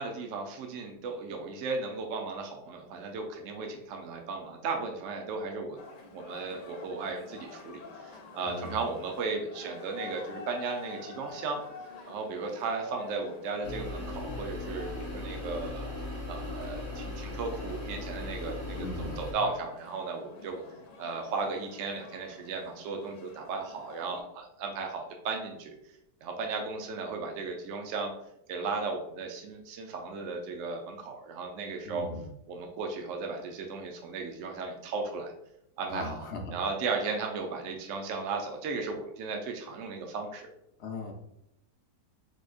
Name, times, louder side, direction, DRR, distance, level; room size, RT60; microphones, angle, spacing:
voice 1, 0.0-5.8 6.1-11.6 12.1-15.9 16.2-20.6 21.0-25.7 26.2-28.1 28.5-32.1 32.5-35.3 35.8-36.2 36.5-40.5, right 4 dB, 70° right, 2 dB, 0.8 m, -35 dB
sound 1, 5.8-24.2, left 4 dB, 85° left, 1.4 m, -49 dB
voice 2, 8.4-8.8 18.7-19.2 31.8-32.3 35.9-36.6 40.8-41.1, left 2 dB, 55° left, 2 dB, 0.7 m, -38 dB
sound 2, 13.6-19.3, left 1 dB, 10° right, 0.8 m, -38 dB
4.1 x 3.1 x 2.3 m, 0.79 s
omnidirectional pair, 1.8 m